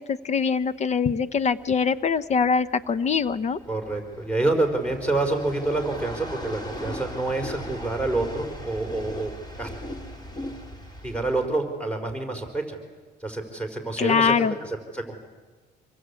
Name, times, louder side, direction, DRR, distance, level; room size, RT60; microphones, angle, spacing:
voice 1, 0.0-3.6 14.0-14.5, left 6 dB, 40° left, 15 dB, 0.9 m, -23 dB
sound 1, 0.6-11.5, equal, 25° left, 3.9 m, -39 dB
voice 2, 3.7-9.3 9.6-9.7 11.0-12.8 13.2-15.2, right 2 dB, 5° left, 3 dB, 4.7 m, -27 dB
27.0 x 23.5 x 8.4 m, 1.3 s
cardioid pair, 110°, 17 cm